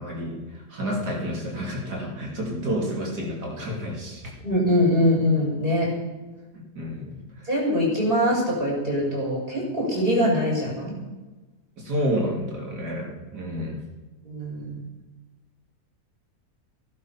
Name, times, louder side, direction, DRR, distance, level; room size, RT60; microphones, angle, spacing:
voice 1, 0.0-4.2 6.5-7.5 11.8-13.8, equal, 80° right, -2 dB, 3.4 m, -30 dB
voice 2, 4.4-5.9 7.5-11.0 14.2-14.8, left 1 dB, 35° right, -4 dB, 6.2 m, -23 dB
17.5 x 11.5 x 5.7 m, 1.2 s
omnidirectional pair, 1.7 m